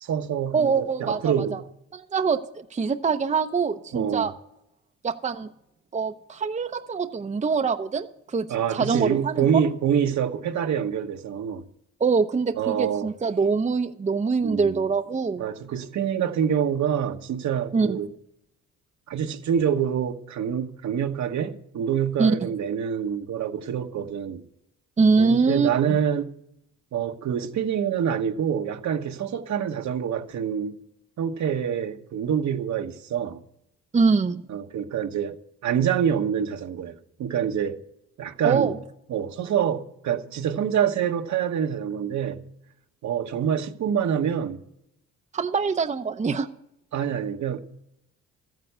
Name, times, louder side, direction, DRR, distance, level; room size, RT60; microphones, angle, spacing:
voice 1, 0.0-1.6 3.9-4.3 8.5-11.6 12.6-13.1 14.4-14.8 15.4-18.1 19.1-24.4 25.2-26.3 26.9-30.7 31.2-33.4 34.5-35.4 35.6-37.8 38.2-38.8 39.1-42.4 43.0-44.6 46.9-47.6, right 8 dB, 65° right, 1.3 m, -26 dB
voice 2, 0.5-1.6 1.9-4.3 5.0-5.5 5.9-8.5 8.7-9.4 12.0-15.4 17.7-18.0 22.2-22.4 25.0-25.7 33.9-34.4 38.4-38.8 45.3-46.5, right 5 dB, 25° right, 0.7 m, -24 dB
13.5 x 9.4 x 6.8 m
cardioid pair, 90°, 30 cm